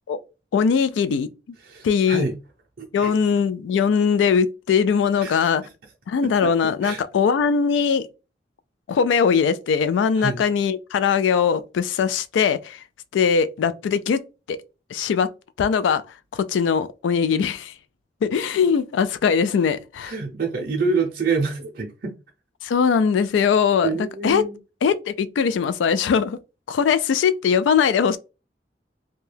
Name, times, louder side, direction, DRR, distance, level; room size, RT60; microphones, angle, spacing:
voice 1, 0.5-1.3 1.8-2.2 2.9-5.6 6.1-8.1 8.9-12.8 13.1-14.2 14.5-14.6 14.9-15.3 15.6-16.0 16.3-17.7 18.2-20.1 22.6-23.9 24.2-24.4 24.8-26.4 26.7-28.2, left 6 dB, 90° left, 0.3 m, -20 dB
voice 2, 1.7-2.3 3.0-3.1 5.2-5.5 6.4-6.5 6.8-7.0 10.1-10.4 20.0-22.1 23.8-24.6, right 4 dB, 55° right, 0.5 m, -26 dB
2.7 x 2.2 x 3.2 m
head